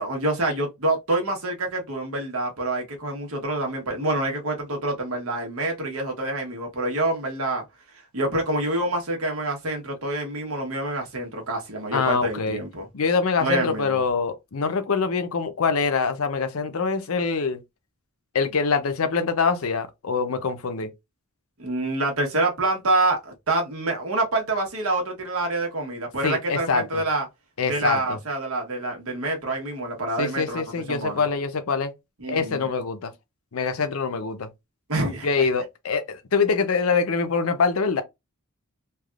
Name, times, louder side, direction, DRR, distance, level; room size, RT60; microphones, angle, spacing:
voice 1, 0.0-7.6 7.9-12.9 13.4-14.0 21.6-27.3 27.7-30.6 30.9-31.2 32.2-32.7 34.9-35.5, right 2 dB, 80° right, 1.2 m, -27 dB
voice 2, 11.9-12.6 12.9-17.6 18.3-20.9 26.2-27.0 27.6-28.2 30.2-31.9 32.3-33.1 33.5-34.5 35.2-38.0, left 5 dB, 80° left, 0.6 m, -24 dB
3.3 x 2.3 x 2.4 m
head